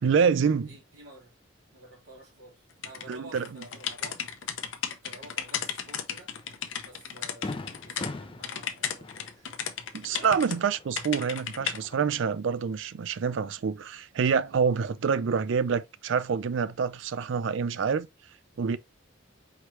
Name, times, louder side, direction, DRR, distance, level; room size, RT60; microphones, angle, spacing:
voice 1, 0.0-0.7 3.1-3.6 9.9-18.1 18.6-18.8, right 6 dB, 65° right, 0.4 m, -27 dB
voice 2, 0.6-1.3 1.7-4.2 5.0-6.3 6.8-9.5 10.0-10.3, right 1 dB, 80° right, 2.9 m, -50 dB
sound 1, 2.8-8.1 8.4-10.6 11.0-11.8, left 8 dB, 70° left, 0.7 m, -34 dB
Fireworks, 6.4-6.5 6.9-7.0 7.4-11.2 11.5-12.4, left 2 dB, 25° left, 0.4 m, -41 dB
4.8 x 3.1 x 3.0 m
head